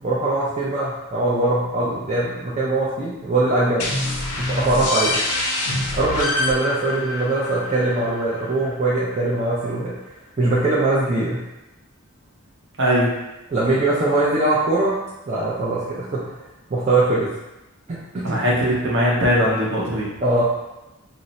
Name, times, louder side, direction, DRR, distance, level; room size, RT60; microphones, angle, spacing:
voice 1, 0.0-4.0 4.4-5.2 5.9-9.9 10.4-11.4 13.5-15.0 15.3-16.2 16.7-17.3 17.9-18.4 20.2-20.5, right 2 dB, 30° right, -7 dB, 0.4 m, -21 dB
sound 1, 3.8-9.2, left 2 dB, 90° left, 0.6 m, -26 dB
voice 2, 12.8-13.1 18.2-20.0, equal, 55° right, -4 dB, 0.7 m, -20 dB
2.5 x 2.1 x 4.0 m, 0.99 s
head